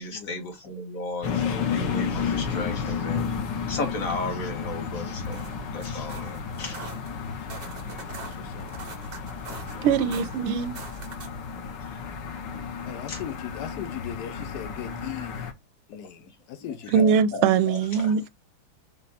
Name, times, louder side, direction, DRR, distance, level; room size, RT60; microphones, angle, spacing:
voice 1, 0.0-3.3 3.7-5.4 5.7-6.9 9.7-10.2 13.1-13.2 16.6-18.1, left 2 dB, 45° left, 1.4 m, -35 dB
sound 1, 1.2-15.5, left 6 dB, 65° left, 1.4 m, -32 dB
sound 2, 5.1-11.5, right 4 dB, 60° right, 0.5 m, -44 dB
voice 2, 8.2-8.7 12.8-15.5 15.9-17.0, left 11 dB, 85° left, 0.9 m, -39 dB
voice 3, 9.8-10.8 16.9-18.3, right 7 dB, 80° right, 1.5 m, -22 dB
5.3 x 2.2 x 4.1 m
omnidirectional pair, 2.3 m